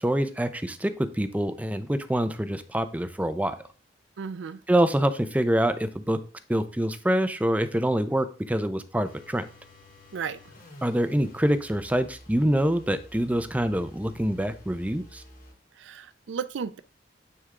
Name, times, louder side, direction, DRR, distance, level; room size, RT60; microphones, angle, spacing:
voice 1, 0.0-3.6 4.7-6.2 6.5-9.4 10.8-15.2, right 1 dB, 10° right, 10 dB, 0.5 m, -25 dB
voice 2, 4.2-4.6 10.1-10.4 15.7-16.8, right 6 dB, 80° right, 13 dB, 0.4 m, -34 dB
sound 1, 9.0-15.6, left 1 dB, 50° left, 2.2 m, -50 dB
9.5 x 3.5 x 3.7 m, 0.37 s
head